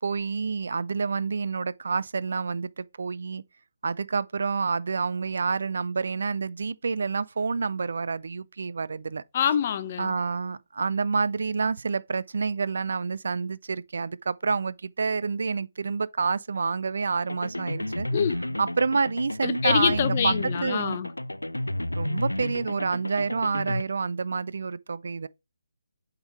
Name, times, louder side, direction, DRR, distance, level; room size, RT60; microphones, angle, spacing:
voice 1, 0.0-3.4 3.8-9.2 10.0-18.1 18.6-20.3 20.6-21.0 21.9-25.3, right 4 dB, 60° right, 0.4 m, -28 dB
voice 2, 9.3-10.1 18.1-18.4 19.4-21.1, left 8 dB, 35° left, 0.7 m, -25 dB
sound 1, 17.3-23.8, left 1 dB, 90° left, 0.3 m, -31 dB
7.8 x 3.8 x 4.3 m
figure-of-eight pair, 145°, 0 cm